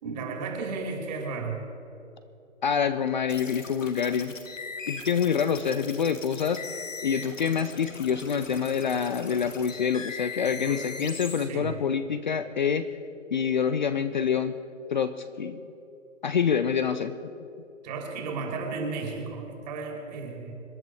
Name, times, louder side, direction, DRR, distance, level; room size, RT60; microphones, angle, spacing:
voice 1, 0.0-1.6 10.5-10.9 11.4-11.7 17.8-20.5, right 4 dB, 35° right, 2 dB, 3.0 m, -34 dB
voice 2, 2.6-4.3 4.9-6.6 7.0-12.9 13.3-14.5 14.9-15.1 15.4-15.6 16.2-17.2, left 7 dB, 40° left, 11 dB, 0.5 m, -26 dB
sound 1, 3.3-11.4, left 5 dB, 80° left, 2.0 m, -40 dB
26.0 x 10.5 x 4.6 m, 3.0 s
figure-of-eight pair, 140°, 38 cm